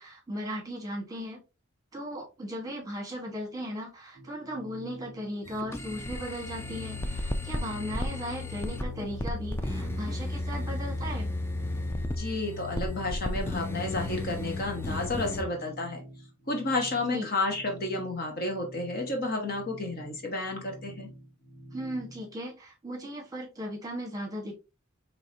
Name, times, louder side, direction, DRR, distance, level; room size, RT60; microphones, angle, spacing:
voice 1, 0.0-1.4 1.9-11.3 17.1-17.3 21.7-24.6, equal, 20° right, 1.3 m, -37 dB
sound 1, 4.1-22.4, right 1 dB, 65° left, 1.9 m, -48 dB
sound 2, 5.5-15.4, left 2 dB, 10° left, 0.3 m, -33 dB
voice 2, 12.2-16.0 16.5-21.1, left 2 dB, 45° left, 1.1 m, -31 dB
4.7 x 3.1 x 2.7 m
head